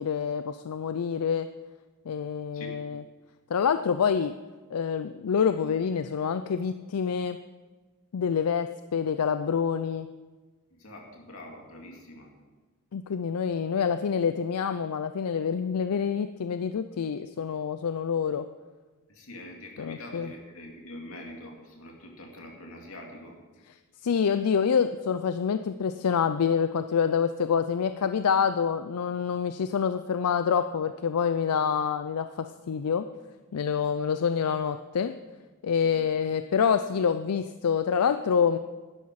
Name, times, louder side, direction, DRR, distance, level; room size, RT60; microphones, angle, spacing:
voice 1, 0.0-1.5 2.1-3.0 3.5-4.3 4.7-7.4 8.1-10.1 12.9-18.5 19.8-20.3 23.7-23.8 24.0-33.1 33.5-35.1 35.6-38.6, left 7 dB, 85° left, 10 dB, 0.4 m, -27 dB
voice 2, 10.7-12.3 19.1-23.4, left 1 dB, 65° left, 0 dB, 2.6 m, -44 dB
11.5 x 11.5 x 4.8 m, 1.3 s
head